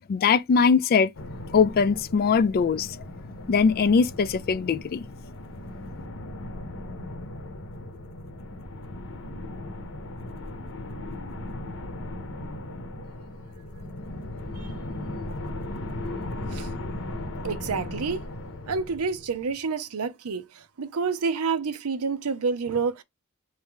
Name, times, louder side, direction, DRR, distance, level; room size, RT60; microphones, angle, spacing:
voice 1, 0.1-1.1 1.5-3.0 3.5-5.1, left 5 dB, 45° left, 0.3 m, -21 dB
sound 1, 1.1-19.6, left 1 dB, 60° left, 0.8 m, -37 dB
voice 2, 17.4-18.3 18.7-23.0, right 5 dB, 75° right, 0.6 m, -28 dB
4.6 x 2.7 x 3.6 m
head